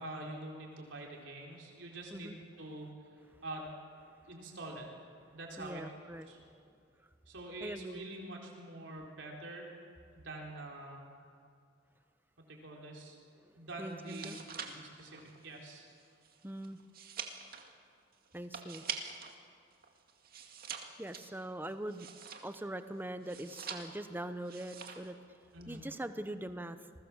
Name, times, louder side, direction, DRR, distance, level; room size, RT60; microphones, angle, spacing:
voice 1, 0.0-2.9 3.4-3.7 4.3-4.9 5.3-5.9 6.3-6.4 7.3-9.7 10.1-11.0 12.5-13.2 13.6-14.3 14.6-15.9 25.5-25.8, right 2 dB, 65° right, -1 dB, 4.2 m, -45 dB
voice 2, 5.6-6.6 7.0-7.1 7.6-8.1 13.4-14.4 16.4-16.8 18.3-18.8 21.0-22.1 22.4-25.2 25.7-26.8, right 1 dB, 10° right, 10 dB, 1.0 m, -42 dB
sound 1, 13.9-19.4 19.7-22.7 23.2-24.1 24.4-25.1 25.4-25.8, right 7 dB, 50° right, 2.2 m, -45 dB
28.0 x 20.5 x 7.4 m, 2.3 s
head